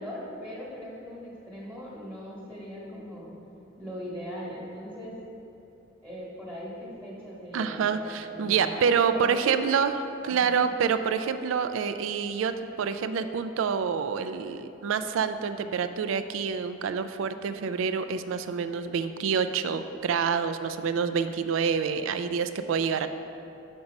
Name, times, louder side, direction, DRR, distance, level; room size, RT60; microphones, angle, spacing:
voice 1, 0.0-3.3 3.8-5.2 6.0-9.6 10.3-10.5, equal, 15° right, -7 dB, 1.3 m, -40 dB
voice 2, 7.5-23.1, right 6 dB, 80° right, 10 dB, 0.3 m, -27 dB
5.9 x 5.3 x 5.2 m, 2.8 s
head